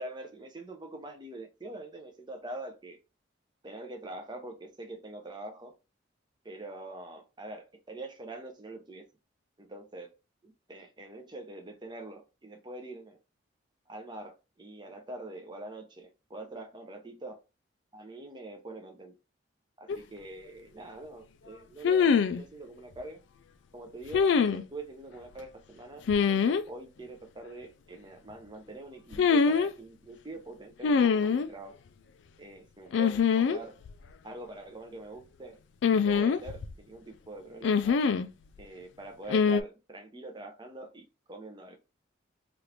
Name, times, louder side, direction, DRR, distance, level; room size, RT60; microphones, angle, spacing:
voice 1, 0.0-3.0 3.6-5.7 6.4-9.1 9.6-10.1 10.4-13.2 13.9-17.4 17.9-19.2 19.8-23.2 23.7-31.8 32.4-33.8 34.2-35.6 35.9-38.0 38.6-41.8, right 2 dB, 20° right, 0.6 m, -44 dB
sound 1, 19.9-20.0 21.8-22.4 24.1-24.6 26.1-26.6 29.1-29.7 30.8-31.5 32.9-33.6 33.8-33.9 35.8-36.7 37.6-38.3 39.3-39.6, left 6 dB, 70° left, 0.3 m, -24 dB
3.0 x 2.5 x 3.2 m
head